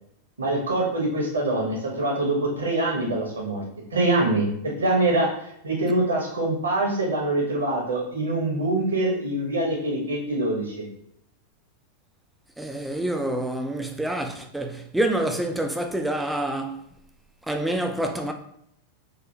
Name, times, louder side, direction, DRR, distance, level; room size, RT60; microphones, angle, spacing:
voice 1, 0.4-3.6 3.9-10.9, right 2 dB, 70° right, 1.1 m, -24 dB
voice 2, 12.6-16.8 17.5-18.3, right 1 dB, 5° right, 0.4 m, -27 dB
3.9 x 2.7 x 2.8 m
figure-of-eight pair, 90°, 0 cm